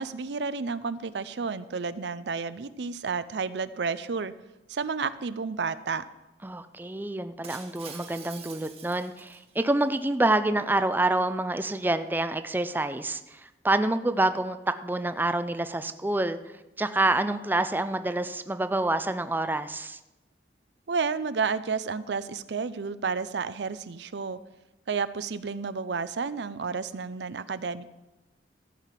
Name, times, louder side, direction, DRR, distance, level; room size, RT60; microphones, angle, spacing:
voice 1, 0.0-4.3 4.7-6.0 20.9-24.4 24.9-27.9, right 5 dB, 75° right, 14 dB, 0.5 m, -31 dB
voice 2, 6.4-16.4 16.8-20.0, right 2 dB, 10° right, 10 dB, 0.4 m, -27 dB
Shatter, 7.4-9.8, right 6 dB, 35° right, 1.2 m, -46 dB
14.0 x 5.9 x 7.4 m, 1.0 s
head